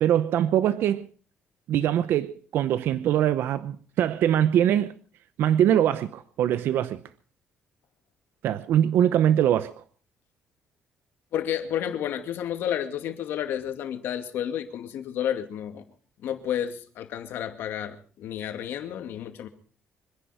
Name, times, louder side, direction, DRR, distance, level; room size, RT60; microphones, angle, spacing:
voice 1, 0.0-1.1 1.7-4.9 5.4-7.0 8.4-9.7, right 10 dB, 75° right, 0.8 m, -22 dB
voice 2, 11.3-15.8 16.2-19.5, left 10 dB, 75° left, 2.4 m, -31 dB
25.5 x 10.5 x 5.0 m
cardioid pair, 140°, 4 cm